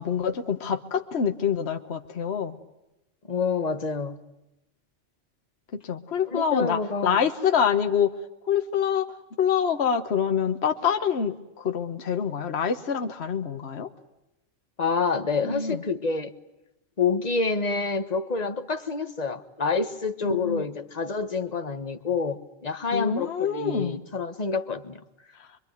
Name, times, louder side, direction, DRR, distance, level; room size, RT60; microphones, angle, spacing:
voice 1, 0.0-2.6 5.7-8.1 8.5-9.1 9.4-13.9 15.4-15.8 20.2-20.6 22.9-24.0, left 7 dB, 55° left, 1.4 m, -26 dB
voice 2, 3.3-4.2 6.3-7.2 14.8-16.3 17.0-25.0, left 4 dB, 35° left, 1.4 m, -27 dB
26.0 x 23.5 x 9.4 m
omnidirectional pair, 1.3 m